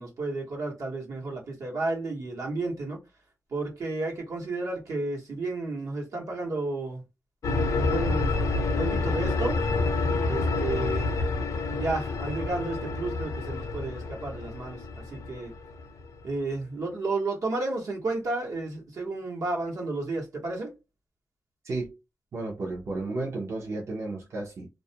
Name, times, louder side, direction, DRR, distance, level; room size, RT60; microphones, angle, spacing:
voice 1, 0.0-3.0 3.5-7.0 7.4-8.3 8.8-9.6 10.2-11.2 11.7-15.5 16.2-20.7, right 2 dB, 85° right, 1.1 m, -32 dB
sound 1, 7.4-16.3, left 3 dB, 80° left, 0.5 m, -28 dB
voice 2, 21.6-22.0 22.3-24.7, right 2 dB, 60° right, 0.6 m, -33 dB
2.4 x 2.1 x 2.7 m
wide cardioid pair, 125°, 5 cm